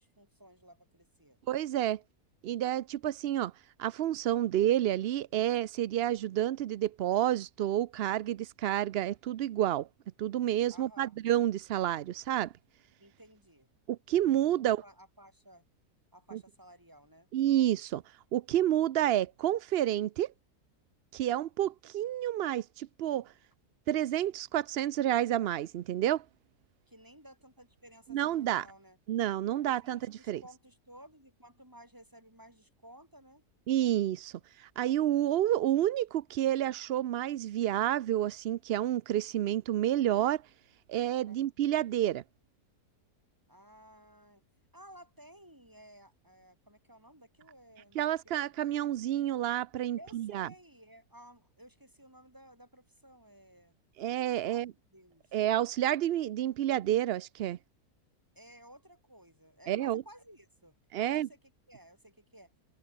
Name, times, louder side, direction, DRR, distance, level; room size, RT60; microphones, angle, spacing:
voice 1, 0.0-1.4 10.7-11.2 13.0-13.7 14.3-15.6 16.1-17.3 26.9-29.0 29.5-33.4 41.2-41.4 43.5-44.4 44.7-48.5 50.0-53.8 54.4-55.4 58.3-61.4 61.7-62.5, right 1 dB, 10° right, 6.1 m, -56 dB
voice 2, 1.5-2.0 2.4-3.5 3.8-9.9 10.2-12.5 13.9-14.8 16.3-16.4 17.3-18.0 18.3-20.3 21.1-23.3 23.9-26.2 28.1-28.7 29.1-30.0 30.3-30.4 33.7-40.4 40.9-42.2 48.0-50.5 54.0-54.7 55.3-57.6 59.7-60.0 60.9-61.3, right 12 dB, 80° right, 0.5 m, -29 dB
omnidirectional pair, 1.6 m